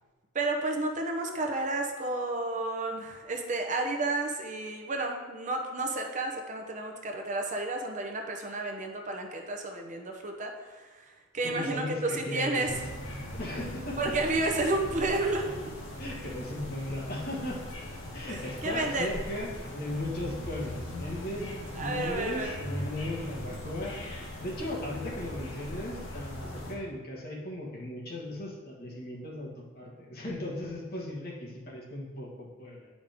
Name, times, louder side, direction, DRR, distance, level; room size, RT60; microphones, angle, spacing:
voice 1, 0.3-12.8 14.0-15.6 18.3-19.1 21.8-22.5, right 2 dB, 35° right, 3 dB, 0.7 m, -31 dB
voice 2, 11.4-12.8 13.3-14.2 16.0-17.6 18.1-21.5 21.8-24.0 24.4-32.9, left 1 dB, 50° left, -4 dB, 1.5 m, -37 dB
sound 1, 12.6-26.7, left 1 dB, 70° left, 1.4 m, -40 dB
8.9 x 5.1 x 3.5 m, 1.3 s
head